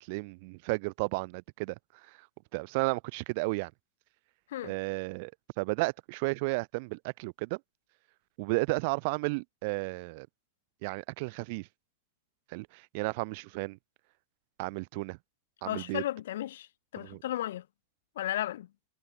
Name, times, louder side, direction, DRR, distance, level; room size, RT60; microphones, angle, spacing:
voice 1, 0.0-1.7 2.5-3.7 4.6-5.3 5.6-7.6 8.4-10.3 10.8-11.7 12.5-13.8 14.6-15.2 15.6-16.0 17.0-17.2, right 28 dB, 50° right, 0.5 m, -33 dB
voice 2, 15.6-16.7 16.9-17.6 18.2-18.7, left 13 dB, 80° left, 1.5 m, -34 dB
supercardioid pair, 155°, 0 cm